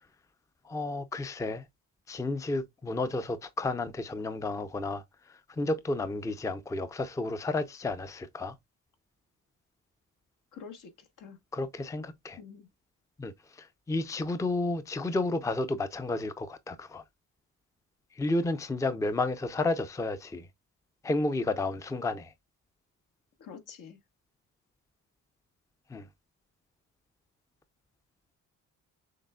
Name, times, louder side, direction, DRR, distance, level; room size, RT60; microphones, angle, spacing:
voice 1, 0.7-1.6 2.1-5.0 5.6-8.5 11.5-12.4 13.2-17.0 18.2-20.5 21.0-22.3 25.9-26.1, left 2 dB, 10° left, 0.5 m, -31 dB
voice 2, 10.5-11.4 12.4-12.7 23.4-24.0, left 6 dB, 75° left, 1.4 m, -47 dB
6.5 x 3.5 x 2.2 m
cardioid pair, 110°, 32 cm